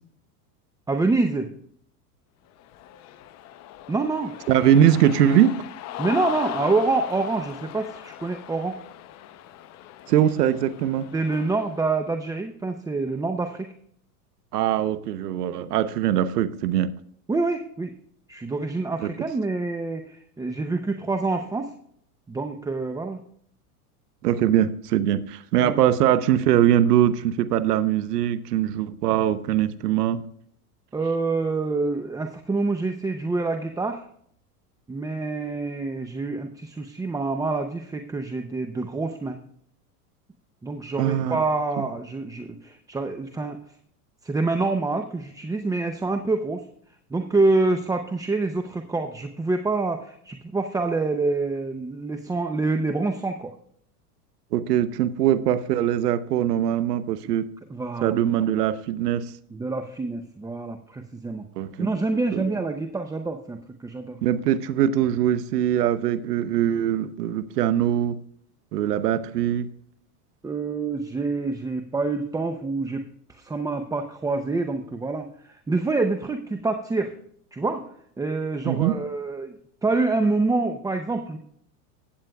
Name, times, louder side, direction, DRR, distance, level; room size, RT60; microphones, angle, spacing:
voice 1, 0.9-1.5 3.9-4.3 6.0-8.8 11.1-13.7 17.3-17.9 18.3-21.7 22.3-23.2 25.6-25.8 30.9-34.0 34.9-39.4 40.6-43.6 44.2-46.6 47.1-53.5 57.7-58.1 59.5-61.5 61.8-64.2 70.4-73.0 73.4-77.1 77.5-77.9 78.2-79.5 79.8-81.4, right 3 dB, 10° right, 6 dB, 0.6 m, -26 dB
Cheering, 2.6-11.8, left 13 dB, 35° left, 0.8 m, -38 dB
voice 2, 4.5-5.5 10.1-11.1 14.5-16.9 19.0-19.1 24.2-30.2 41.0-41.4 41.8-41.9 54.5-57.5 58.0-59.3 61.6-61.9 62.3-62.6 64.2-68.2 68.7-69.7 78.6-78.9, right 10 dB, 85° right, 13 dB, 0.9 m, -22 dB
15.5 x 8.8 x 2.3 m, 0.65 s
supercardioid pair, 120°, 46 cm